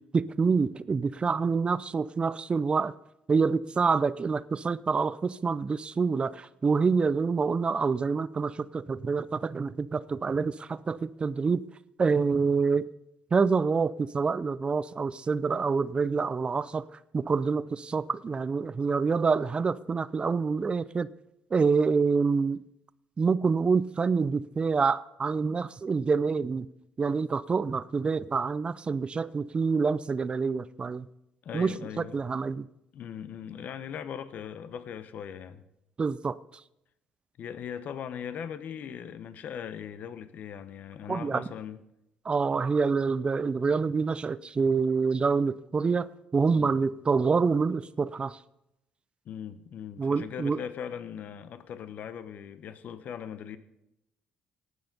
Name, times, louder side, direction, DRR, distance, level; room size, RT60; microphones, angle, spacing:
voice 1, 0.1-2.9 3.3-11.6 12.0-12.9 13.3-16.8 17.1-21.1 21.5-22.6 23.2-26.7 27.0-31.1 31.5-31.7 32.1-32.7 36.0-36.4 41.1-41.4 42.2-48.4 50.0-50.6, right 5 dB, 35° right, 0.6 m, -27 dB
voice 2, 31.4-32.2 32.9-35.6 37.4-41.8 46.5-46.8 49.2-53.6, left 8 dB, 65° left, 0.9 m, -39 dB
18.0 x 6.6 x 5.4 m
supercardioid pair, 65°, 3 cm